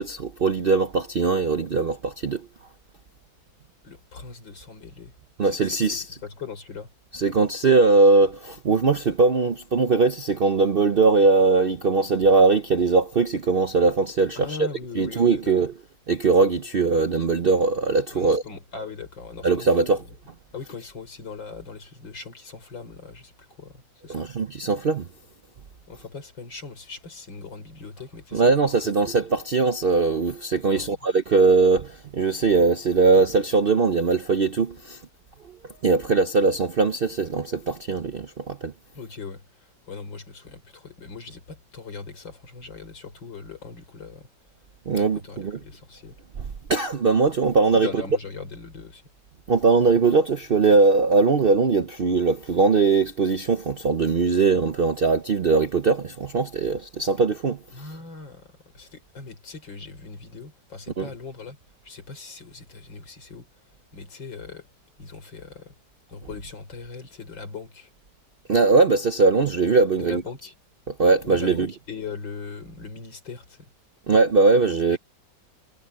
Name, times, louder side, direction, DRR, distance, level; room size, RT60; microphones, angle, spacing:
voice 1, 0.0-2.5 5.4-6.2 7.1-14.7 15.0-15.7 16.1-18.4 19.4-20.0 24.1-25.1 28.3-35.0 35.8-38.7 44.9-45.6 46.7-47.9 49.5-57.6 61.0-61.1 68.5-70.2 70.9-71.7 74.1-75.0, right 4 dB, 55° right, 0.6 m, -20 dB
voice 2, 3.8-5.1 5.4-6.9 14.3-15.5 18.1-20.0 20.5-24.3 25.9-28.5 28.8-29.0 30.6-31.0 38.9-44.3 44.9-46.2 47.7-49.0 57.7-61.6 61.8-63.5 63.9-64.7 65.0-65.7 66.1-67.9 70.0-70.5 71.2-73.7 74.9-75.0, left 5 dB, 90° left, 5.0 m, -40 dB
omnidirectional pair, 2.0 m